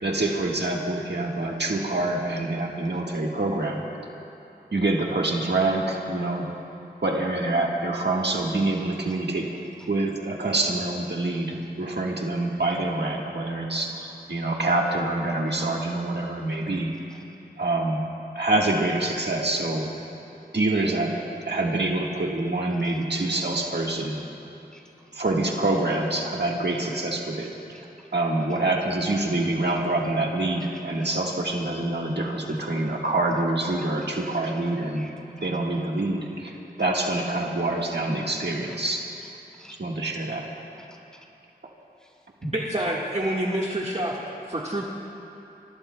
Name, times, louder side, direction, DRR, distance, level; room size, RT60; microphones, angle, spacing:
voice 1, 0.0-3.8 4.7-6.5 7.0-9.5 9.9-17.0 17.6-18.0 18.3-19.9 20.5-21.1 21.4-24.2 25.1-27.5 28.1-35.0 35.4-39.1 39.8-40.5, right 2 dB, 80° right, -1 dB, 1.5 m, -26 dB
voice 2, 9.5-9.9 16.3-16.6 17.1-17.2 22.8-23.0 23.4-23.9 24.7-25.1 26.7-26.9 27.7-27.8 29.6-29.7 30.6-30.7 31.0-31.1 31.6-31.7 34.1-35.1 35.7-35.8 37.1-37.2 38.7-38.8 39.2-39.3 39.6-39.8 40.8-41.2 42.0-42.2 43.5-43.8, equal, 5° left, -2 dB, 3.8 m, -51 dB
voice 3, 42.4-44.2 44.5-44.8, right 1 dB, 40° right, -4 dB, 1.5 m, -27 dB
27.5 x 22.5 x 2.2 m, 2.9 s
wide cardioid pair, 55°, 17 cm